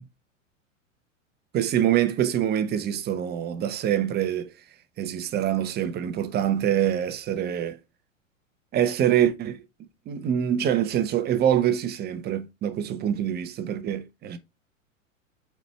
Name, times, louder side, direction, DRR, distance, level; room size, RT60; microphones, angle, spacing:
voice 1, 1.5-4.5 5.0-7.8 8.7-9.6 10.1-14.4, right 10 dB, 25° right, 0.8 m, -25 dB
7.8 x 4.5 x 3.1 m
figure-of-eight pair, 95°, 39 cm